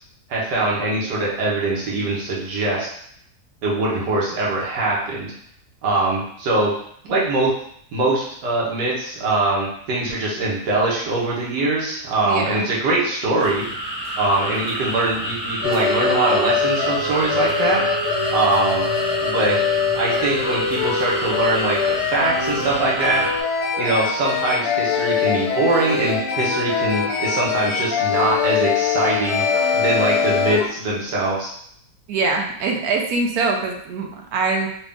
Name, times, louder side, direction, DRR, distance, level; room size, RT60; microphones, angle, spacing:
voice 1, 0.3-2.9 3.6-5.3 5.8-6.7 7.0-7.5 7.9-13.7 14.2-17.8 18.3-18.9 19.2-19.6 19.9-23.2 23.8-29.4 29.7-31.5, right 2 dB, 85° right, -5 dB, 1.7 m, -22 dB
voice 2, 12.2-12.7 32.1-34.7, right 3 dB, 70° right, 2 dB, 1.0 m, -23 dB
sound 1, 13.4-23.4, equal, 5° right, 0.7 m, -29 dB
sound 2, 15.6-30.6, left 6 dB, 70° left, 1.3 m, -23 dB
3.9 x 2.3 x 3.5 m, 0.66 s
omnidirectional pair, 1.8 m